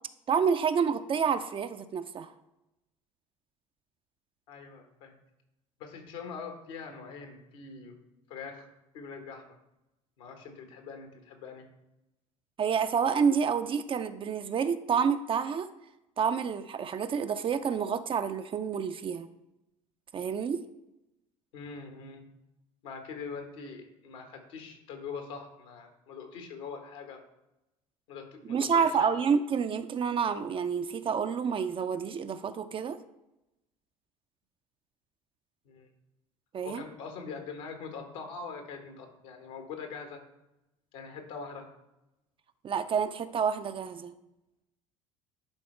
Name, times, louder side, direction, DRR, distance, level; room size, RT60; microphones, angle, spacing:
voice 1, 0.3-2.3 12.6-15.7 16.2-19.3 20.1-20.7 28.5-33.0 36.5-36.8 42.6-44.1, right 6 dB, 30° right, 10 dB, 0.5 m, -28 dB
voice 2, 4.5-5.1 5.8-8.0 8.3-8.7 8.9-9.6 10.2-11.7 21.5-22.3 22.8-27.2 28.1-29.1 35.6-35.9 36.6-40.2 40.9-41.7, left 5 dB, 65° left, 4 dB, 1.3 m, -43 dB
10.5 x 4.1 x 3.2 m, 0.91 s
figure-of-eight pair, 60°, 17 cm